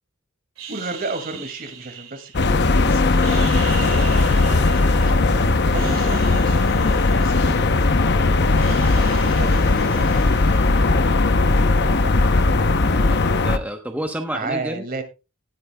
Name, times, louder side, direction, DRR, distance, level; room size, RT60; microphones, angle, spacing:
sound 1, 0.6-2.7 3.1-5.3 5.6-8.1 8.3-11.2, right 8 dB, 75° right, 2.6 m, -39 dB
voice 1, 0.7-7.7 8.0-10.9 11.2-12.6 14.3-15.0, right 3 dB, 45° right, 8 dB, 2.2 m, -35 dB
sound 2, 2.3-13.6, left 3 dB, 55° left, 0.8 m, -18 dB
voice 2, 12.8-14.8, right 1 dB, 10° right, 4 dB, 0.9 m, -30 dB
18.5 x 8.5 x 2.2 m, 0.28 s
head